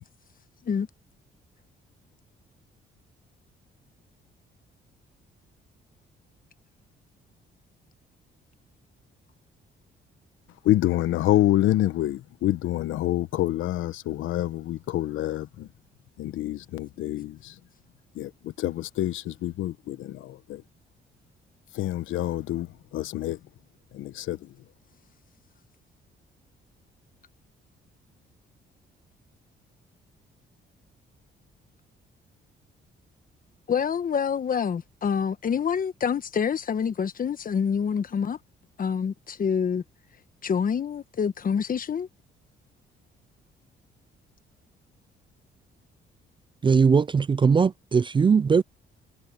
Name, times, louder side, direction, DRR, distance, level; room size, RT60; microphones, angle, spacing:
voice 1, 10.6-15.7 16.2-17.5 18.1-20.6 21.7-23.4 23.9-24.5, left 14 dB, 80° left, 1.1 m, -27 dB
voice 2, 33.7-38.4 38.8-39.8 40.4-42.1, left 7 dB, 45° left, 1.2 m, -26 dB
voice 3, 46.6-48.6, right 5 dB, 25° right, 0.4 m, -20 dB
cardioid pair, 90°, 20 cm